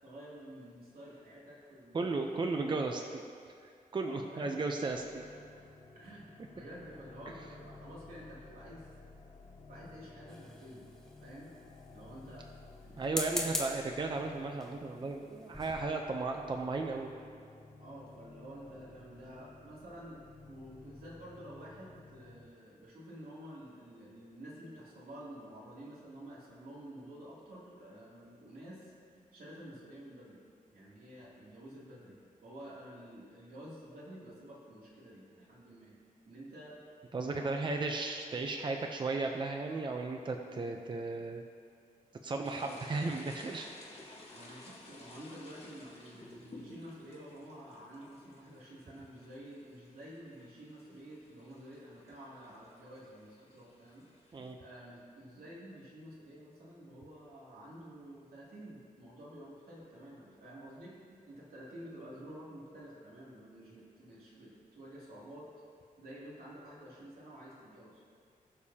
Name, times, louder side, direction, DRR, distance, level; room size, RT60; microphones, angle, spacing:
voice 1, 0.0-2.0 2.3-2.4 4.0-5.0 5.3-5.7 5.9-8.9 9.7-10.9 11.2-11.5 11.9-12.5 12.8-13.6 17.8-20.2 20.5-30.4 30.7-32.2 32.4-36.0 36.2-36.8 37.2-37.6 40.4-40.7 42.5-42.8 44.3-65.5 66.0-68.0, equal, 85° right, -6 dB, 2.8 m, -50 dB
voice 2, 1.9-3.2 3.9-5.2 13.0-17.1 37.1-41.4 42.2-43.7 44.5-44.6 54.3-54.6, right 3 dB, 35° right, 3 dB, 0.6 m, -35 dB
sound 1, 4.9-22.4, left 3 dB, 65° left, 3.0 m, -54 dB
sound 2, 10.3-11.1 13.0-13.9 14.6-14.8 15.2-15.3 15.5-15.8, left 1 dB, 5° left, 1.0 m, -38 dB
sound 3, 42.4-54.5, left 2 dB, 45° left, 1.8 m, -55 dB
20.0 x 6.9 x 2.8 m, 2.2 s
wide cardioid pair, 150°, 15 cm